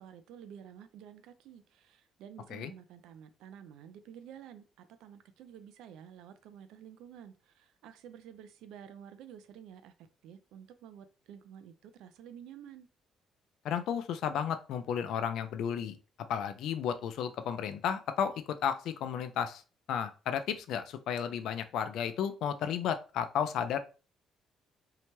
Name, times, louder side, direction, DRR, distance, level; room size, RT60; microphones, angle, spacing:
voice 1, 0.0-12.9, right 9 dB, 85° right, 0.3 m, -51 dB
voice 2, 13.6-16.0 16.3-19.6 19.9-23.8, left 8 dB, 75° left, 0.3 m, -33 dB
2.8 x 2.2 x 3.0 m
cardioid pair, 100°, 0 cm